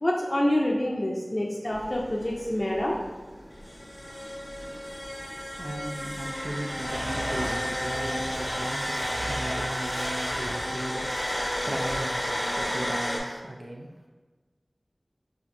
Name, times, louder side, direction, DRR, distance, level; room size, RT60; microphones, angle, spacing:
voice 1, 0.0-3.0, left 1 dB, 40° left, -3 dB, 0.4 m, -27 dB
sound 1, 1.7-13.2, equal, 10° left, 0.9 m, -32 dB
voice 2, 4.6-13.9, right 1 dB, 65° right, 1 dB, 0.4 m, -38 dB
Domestic sounds home sounds, 6.9-10.7 11.0-12.0, equal, 85° right, 0.9 m, -36 dB
4.4 x 2.5 x 2.5 m, 1.3 s
wide cardioid pair, 45°, 0 cm